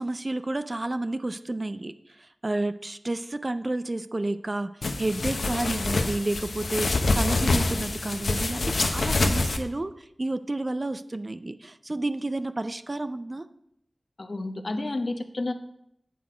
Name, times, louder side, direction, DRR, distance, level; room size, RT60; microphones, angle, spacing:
voice 1, 0.0-1.9 2.4-4.7 5.0-13.5, right 2 dB, 35° right, 11 dB, 0.4 m, -30 dB
sound 1, 4.8-9.6, left 2 dB, 90° left, 0.8 m, -26 dB
voice 2, 14.2-15.5, left 2 dB, 55° left, 7 dB, 0.8 m, -30 dB
9.2 x 6.1 x 5.0 m, 0.77 s
wide cardioid pair, 80°, 0 cm